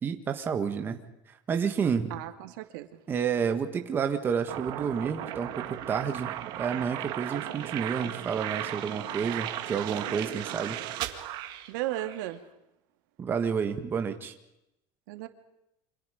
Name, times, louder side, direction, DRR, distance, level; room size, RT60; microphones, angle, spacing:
voice 1, 0.0-1.0 1.5-2.1 3.1-10.8 13.2-14.3, right 6 dB, 20° right, 6 dB, 1.6 m, -30 dB
voice 2, 2.1-2.9 11.7-12.4 15.1-15.3, right 15 dB, 85° right, 7 dB, 2.4 m, -34 dB
sound 1, 4.5-12.3, right 13 dB, 45° right, 1.9 m, -36 dB
28.5 x 26.5 x 5.1 m, 0.86 s
cardioid pair, 170°, 10 cm